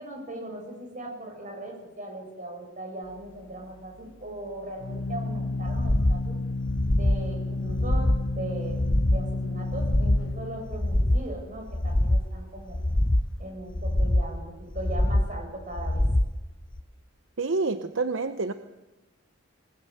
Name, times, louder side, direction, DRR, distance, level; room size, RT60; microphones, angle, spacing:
voice 1, 0.0-6.4 6.9-8.8 9.1-12.8 13.4-16.0, right 1 dB, 40° right, 2 dB, 7.7 m, -39 dB
Organ, 3.0-13.5, left 2 dB, 85° left, 0.8 m, -33 dB
sound 1, 5.7-6.2 6.6-7.2 7.6-8.2 8.7-9.2 9.7-10.3 10.7-11.3 11.7-12.3 12.7-13.3 13.7-14.3 14.7-15.3 15.7-16.3 16.7-16.8, left 1 dB, 25° left, 0.8 m, -24 dB
voice 2, 17.4-18.5, right 3 dB, 70° right, 9 dB, 0.9 m, -27 dB
26.5 x 19.5 x 7.9 m, 1.1 s
head